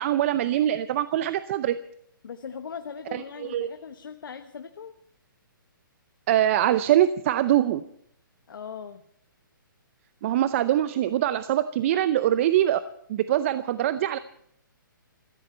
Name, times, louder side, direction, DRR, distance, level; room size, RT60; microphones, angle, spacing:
voice 1, 0.0-1.8 3.1-3.7 6.3-7.8 10.2-12.8 13.1-14.2, right 12 dB, 35° right, 14 dB, 0.6 m, -23 dB
voice 2, 2.2-4.9 8.5-9.0, left 6 dB, 70° left, 8 dB, 1.1 m, -39 dB
21.5 x 15.5 x 4.3 m, 0.70 s
hypercardioid pair, 145°, 12 cm